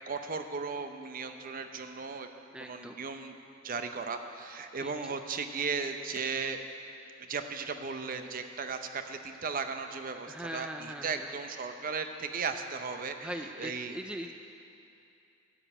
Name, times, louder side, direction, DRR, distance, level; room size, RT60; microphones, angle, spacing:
voice 1, 0.1-2.3 2.6-3.4 3.6-6.6 7.2-14.0, right 5 dB, 45° right, 7 dB, 0.7 m, -36 dB
voice 2, 2.5-3.0 4.8-5.2 10.3-11.4 13.2-14.3, equal, 5° right, 4 dB, 0.4 m, -41 dB
13.0 x 5.2 x 8.7 m, 2.7 s
head